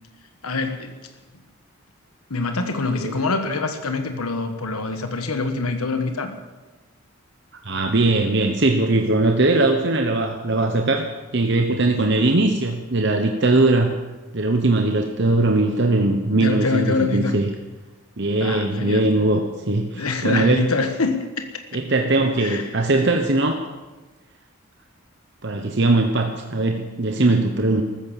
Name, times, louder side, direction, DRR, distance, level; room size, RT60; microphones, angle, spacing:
voice 1, 0.4-0.9 2.3-6.3 16.3-17.4 18.4-19.1 19.9-21.6 22.4-22.8, left 3 dB, 90° left, 7 dB, 1.4 m, -25 dB
voice 2, 7.6-11.1 11.3-13.9 14.3-17.5 18.2-20.6 21.7-23.6 25.4-27.8, right 2 dB, 55° right, 4 dB, 1.0 m, -20 dB
14.5 x 13.5 x 7.3 m, 1.2 s
head